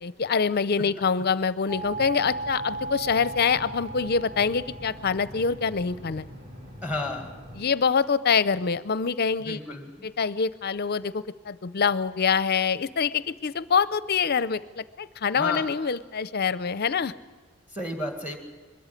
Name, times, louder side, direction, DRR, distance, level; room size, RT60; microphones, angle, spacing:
voice 1, 0.0-6.3 7.6-9.6 10.0-17.1, left 6 dB, 45° left, 16 dB, 0.6 m, -25 dB
sound 1, 1.7-7.7, right 2 dB, 35° right, 4.3 m, -37 dB
voice 2, 6.8-7.3 9.4-10.1 15.3-15.6 17.7-18.4, left 2 dB, 5° right, 4 dB, 1.9 m, -32 dB
22.0 x 13.5 x 9.8 m, 1.3 s
head